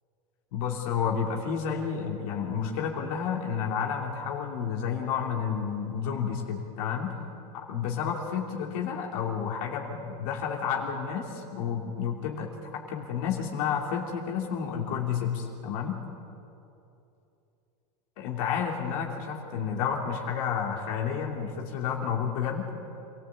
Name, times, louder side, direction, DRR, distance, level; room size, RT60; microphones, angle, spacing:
voice 1, 0.5-7.1 7.5-16.0 18.2-22.7, left 7 dB, 70° left, 0 dB, 2.9 m, -31 dB
26.5 x 14.5 x 8.4 m, 2.8 s
supercardioid pair, 125°, 19 cm